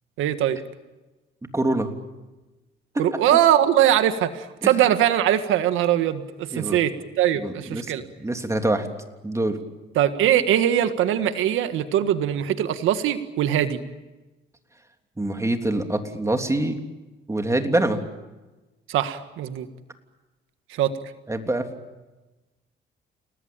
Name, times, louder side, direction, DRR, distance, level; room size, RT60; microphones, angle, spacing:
voice 1, 0.2-0.6 3.0-8.0 9.9-13.8 18.9-19.7 20.7-20.9, right 11 dB, 90° right, 10 dB, 1.7 m, -21 dB
voice 2, 1.5-1.9 4.6-4.7 6.5-6.8 7.4-8.9 9.2-9.6 15.2-16.8 17.3-18.0 21.3-21.7, right 1 dB, 15° right, 5 dB, 3.3 m, -25 dB
29.5 x 19.5 x 8.9 m, 1.1 s
cardioid pair, 90°, 20 cm